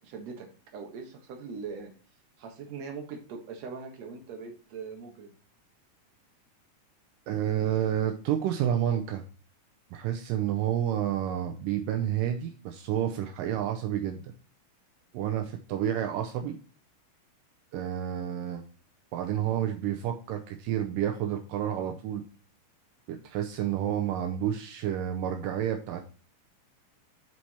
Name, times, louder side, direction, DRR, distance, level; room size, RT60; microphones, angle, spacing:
voice 1, 0.0-1.9 2.4-5.3, right 5 dB, 55° right, 2 dB, 2.4 m, -41 dB
voice 2, 7.3-9.2 9.9-14.3 15.1-16.6 17.7-18.6 19.1-22.2 23.1-26.0, right 10 dB, 80° right, 5 dB, 2.3 m, -30 dB
7.6 x 4.6 x 4.2 m, 0.40 s
omnidirectional pair, 4.0 m